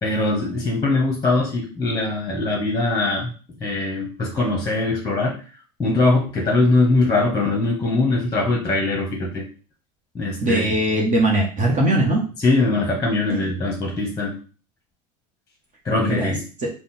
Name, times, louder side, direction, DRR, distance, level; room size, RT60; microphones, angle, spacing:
voice 1, 0.0-3.3 3.6-5.4 5.8-9.4 10.1-10.6 12.4-14.3 15.8-16.4, left 2 dB, 15° left, -1 dB, 1.1 m, -21 dB
voice 2, 10.4-12.2 13.3-13.4 16.0-16.3 16.6-16.7, right 1 dB, 35° right, -2 dB, 1.1 m, -20 dB
3.6 x 2.3 x 4.3 m, 0.38 s
hypercardioid pair, 90°, 21 cm